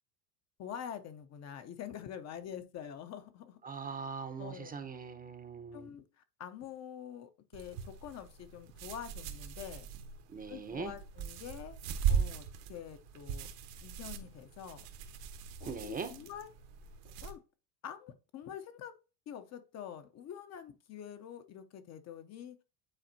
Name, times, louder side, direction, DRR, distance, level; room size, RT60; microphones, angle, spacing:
voice 1, 0.6-3.6 4.4-4.9 5.7-9.9 10.5-11.8 12.1-13.5 13.8-14.8 15.6-16.5 17.0-17.4 17.8-18.9 19.3-22.6, left 9 dB, 35° left, 0.6 m, -46 dB
voice 2, 3.6-5.9 10.3-10.9 15.7-16.1, right 5 dB, 20° right, 0.7 m, -41 dB
sound 1, 7.5-17.3, right 7 dB, 65° right, 1.1 m, -39 dB
8.9 x 4.1 x 2.7 m
supercardioid pair, 100°, 46 cm